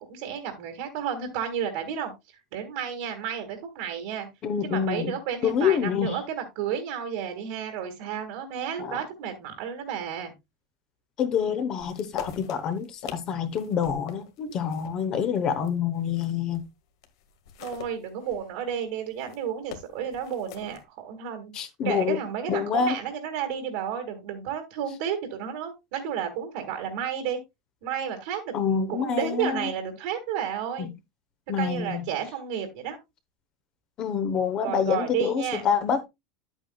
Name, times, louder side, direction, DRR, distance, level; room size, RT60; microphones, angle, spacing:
voice 1, 0.1-2.1 2.5-4.3 4.6-10.3 17.6-21.5 21.8-27.4 27.8-30.9 31.6-33.0 34.5-35.6, right 8 dB, 55° right, 1.8 m, -32 dB
voice 2, 4.4-5.1 5.4-6.2 8.8-9.0 11.2-16.6 21.5-22.2 22.5-23.0 28.5-29.7 30.8-30.9 31.5-32.0 34.0-36.1, left 7 dB, 25° left, 0.9 m, -27 dB
sound 1, 11.8-16.7 17.0-20.8, left 10 dB, 70° left, 1.7 m, -44 dB
11.0 x 8.1 x 2.3 m
supercardioid pair, 180°, 2 cm